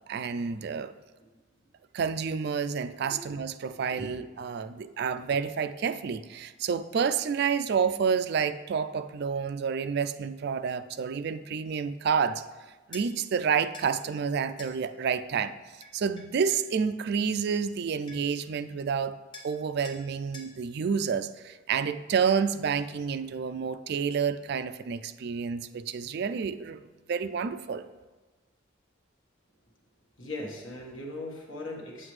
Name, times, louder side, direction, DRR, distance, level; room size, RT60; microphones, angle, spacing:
voice 1, 0.1-0.9 1.9-12.4 12.9-15.5 15.9-19.1 19.4-26.8 27.1-27.8, right 6 dB, 55° right, 11 dB, 0.3 m, -29 dB
voice 2, 3.7-4.1 4.6-4.9 30.2-32.1, left 1 dB, 85° left, 0 dB, 1.5 m, -40 dB
sound 1, 12.9-13.1 13.7-13.9 14.6-14.8 15.8-16.7 17.7-17.8 18.1-18.4 19.3-19.6 19.8-20.0 20.3-20.5, left 2 dB, 25° left, 1.0 m, -46 dB
7.8 x 7.8 x 3.2 m, 1.3 s
head